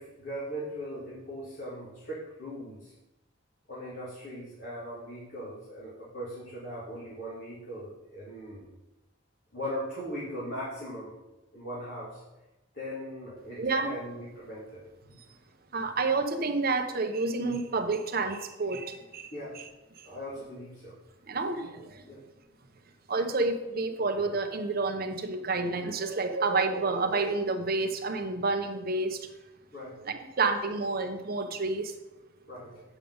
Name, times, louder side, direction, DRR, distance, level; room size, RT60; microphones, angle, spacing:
voice 1, 0.0-2.9 3.7-8.6 9.5-11.1 11.5-12.2 12.7-14.8 19.3-19.6 20.0-21.0 22.1-22.2 29.7-30.0 32.5-32.8, equal, 60° left, -8 dB, 2.4 m, -39 dB
voice 2, 13.6-13.9 15.7-19.3 19.5-19.6 20.0-20.1 21.3-22.2 23.1-29.2 30.1-31.9, right 3 dB, 50° right, 5 dB, 0.8 m, -29 dB
8.3 x 5.0 x 5.4 m, 1.0 s
head